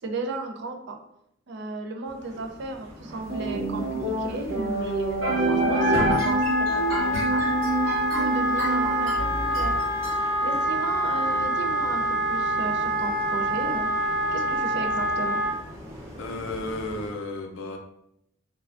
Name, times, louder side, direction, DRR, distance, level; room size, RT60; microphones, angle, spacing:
voice 1, 0.0-1.0 1.5-7.4 8.2-9.7 10.4-13.9 14.3-15.4, right 3 dB, 60° right, 4 dB, 0.4 m, -34 dB
sound 1, 2.0-17.1, equal, 15° right, 0.8 m, -43 dB
sound 2, 3.3-10.1, right 2 dB, 80° right, 1.1 m, -27 dB
Wind instrument woodwind instrument, 5.6-15.5, equal, 20° left, 0.8 m, -26 dB
voice 2, 16.2-17.8, left 2 dB, 75° left, 4 dB, 0.5 m, -33 dB
3.3 x 2.2 x 2.4 m, 0.76 s
head